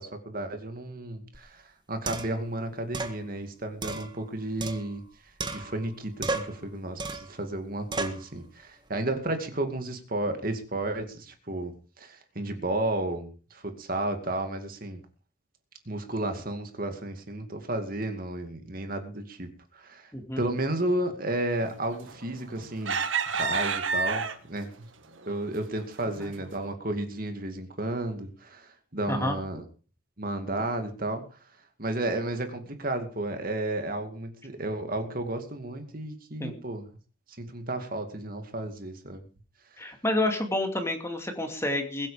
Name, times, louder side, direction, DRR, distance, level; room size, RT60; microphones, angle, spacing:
voice 1, 0.0-5.0 5.5-15.0 15.9-20.1 20.4-23.0 23.3-24.9 25.3-29.6 30.2-31.2 31.8-36.8 37.4-39.2, right 1 dB, 45° right, 6 dB, 2.4 m, -32 dB
sound 1, 1.3-1.4 2.1-2.4 2.9-3.2 3.8-5.1 5.4-5.9 6.2-6.6 7.0-7.4 7.9-8.3, right 3 dB, 20° right, 1.8 m, -34 dB
sound 2, 22.1-22.4 22.8-24.6 25.2-25.4 25.8-26.0, right 5 dB, 80° right, 1.6 m, -28 dB
voice 2, 39.8-42.1, left 1 dB, 15° left, 4 dB, 2.6 m, -29 dB
22.0 x 8.8 x 5.1 m, 0.38 s
head